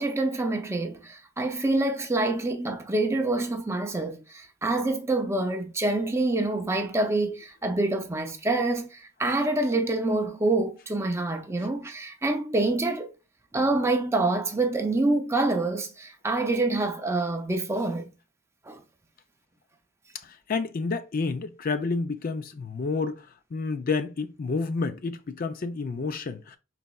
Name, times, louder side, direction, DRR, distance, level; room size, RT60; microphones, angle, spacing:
voice 1, 0.0-13.1 13.5-18.1 18.7-18.8, right 2 dB, 15° right, 0.5 m, -26 dB
voice 2, 20.2-26.6, left 4 dB, 45° left, 0.4 m, -30 dB
5.4 x 4.1 x 2.3 m
head